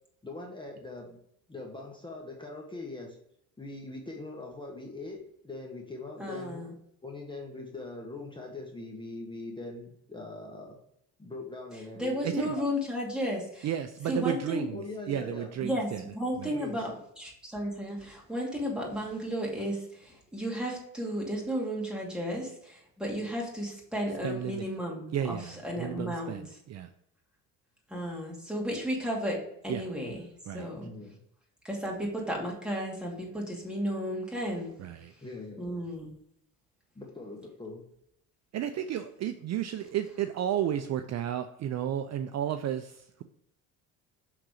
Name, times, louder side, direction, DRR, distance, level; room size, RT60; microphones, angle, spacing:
voice 1, 0.2-1.2 1.5-3.2 3.6-6.6 7.0-10.8 11.2-12.6 14.7-15.5 16.5-16.9 30.7-31.2 34.9-35.8 36.9-37.9, left 2 dB, 15° left, 0 dB, 1.2 m, -42 dB
voice 2, 6.2-6.7 12.0-13.7 14.1-14.7 15.6-16.9 17.2-26.4 27.9-30.3 30.5-30.9 31.6-34.7 35.6-36.1, equal, ahead, -3 dB, 2.4 m, -33 dB
voice 3, 12.2-12.5 13.6-16.0 16.4-16.5 24.2-24.7 25.1-26.9 29.7-29.8 30.5-30.7 34.8-35.1 38.5-43.2, right 10 dB, 50° right, 9 dB, 0.5 m, -33 dB
6.0 x 3.9 x 4.9 m, 0.75 s
cardioid pair, 100°, 36 cm